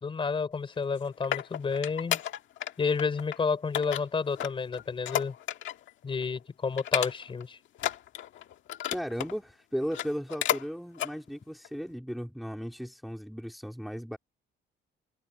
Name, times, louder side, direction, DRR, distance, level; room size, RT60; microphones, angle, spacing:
voice 1, 0.0-2.2 2.8-5.3 6.0-7.6, left 5 dB, 25° left, 4.8 m, -30 dB
sound 1, 0.8-2.7 3.0-3.4 3.7-5.9 6.2-6.4 6.8-7.4 7.7-9.3 9.8-10.7 10.9-11.1 11.6-11.7, left 11 dB, 65° left, 1.8 m, -32 dB
voice 2, 8.9-14.2, equal, ahead, 2.9 m, -36 dB
cardioid pair, 170°, 21 cm